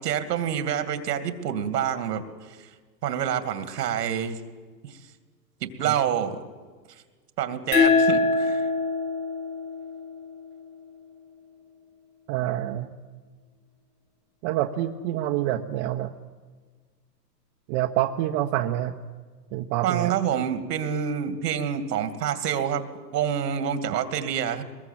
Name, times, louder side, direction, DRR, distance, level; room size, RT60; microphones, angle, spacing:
voice 1, 0.0-2.2 2.5-2.6 3.0-4.4 4.8-5.0 5.6-6.4 7.4-8.7 19.8-22.8 23.1-24.6, right 9 dB, 70° right, 9 dB, 2.5 m, -27 dB
sound 1, 7.7-10.9, left 4 dB, 60° left, 6.4 m, -24 dB
voice 2, 12.3-12.9 14.4-16.1 17.7-18.9 19.5-20.1, right 13 dB, 45° right, 3 dB, 1.2 m, -27 dB
22.0 x 21.0 x 7.6 m, 1.4 s
hypercardioid pair, 110°, 50 cm